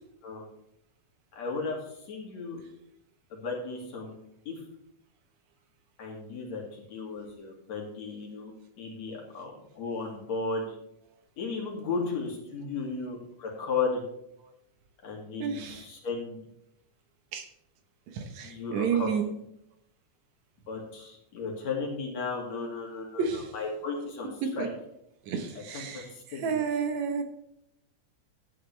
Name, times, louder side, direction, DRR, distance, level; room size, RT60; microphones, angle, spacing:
voice 1, 1.3-2.6 3.3-4.2 4.5-4.6 6.0-10.8 11.4-14.0 15.0-16.4 18.4-19.1 20.7-24.7 25.7-26.6, left 4 dB, 65° left, -1 dB, 3.7 m, -35 dB
voice 2, 15.4-15.9 17.3-17.5 18.1-19.3 23.2-23.5 24.4-24.7 25.2-27.2, right 6 dB, 75° right, 6 dB, 2.4 m, -31 dB
12.5 x 9.5 x 3.4 m, 0.79 s
omnidirectional pair, 3.3 m